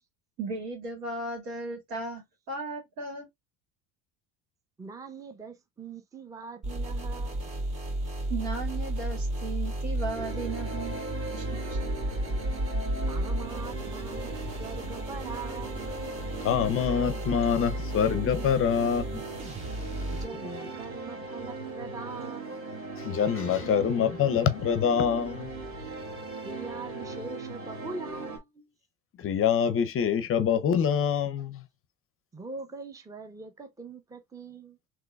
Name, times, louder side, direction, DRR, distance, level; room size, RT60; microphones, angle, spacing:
voice 1, 0.4-3.3 8.3-11.0 11.3-11.8, right 3 dB, 85° right, 2.0 m, -36 dB
voice 2, 4.8-7.5 13.0-15.9 20.1-22.7 26.4-28.7 32.3-34.8, right 4 dB, 10° right, 0.6 m, -42 dB
sound 1, 6.6-20.2, right 1 dB, 50° right, 2.6 m, -33 dB
sound 2, 10.1-28.4, right 3 dB, 35° right, 1.9 m, -39 dB
voice 3, 16.4-19.2 23.0-25.5 29.2-31.6, left 8 dB, 35° left, 0.5 m, -25 dB
3.7 x 3.0 x 2.2 m
supercardioid pair, 100°, 38 cm